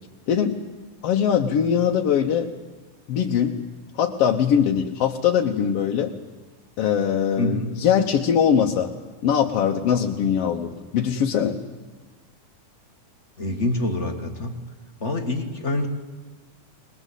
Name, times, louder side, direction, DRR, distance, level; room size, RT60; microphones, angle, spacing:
voice 1, 0.3-0.6 1.0-2.5 3.1-3.5 4.0-6.1 6.8-8.9 9.2-11.6, left 8 dB, 60° left, 1 dB, 1.8 m, -21 dB
voice 2, 7.4-7.8 13.4-14.6 15.0-15.9, left 1 dB, 40° left, 4 dB, 1.0 m, -26 dB
22.0 x 21.0 x 8.3 m, 1.3 s
omnidirectional pair, 3.7 m